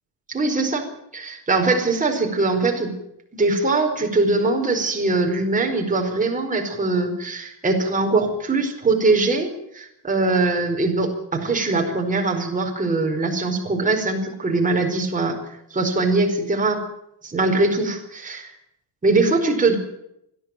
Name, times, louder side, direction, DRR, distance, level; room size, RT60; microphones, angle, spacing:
voice 1, 0.3-0.9 1.1-2.9 3.3-15.4 15.7-16.8 17.2-18.5 19.0-19.8, right 3 dB, 15° right, 2 dB, 4.8 m, -22 dB
29.0 x 11.0 x 9.1 m, 0.80 s
cardioid pair, 135°, 47 cm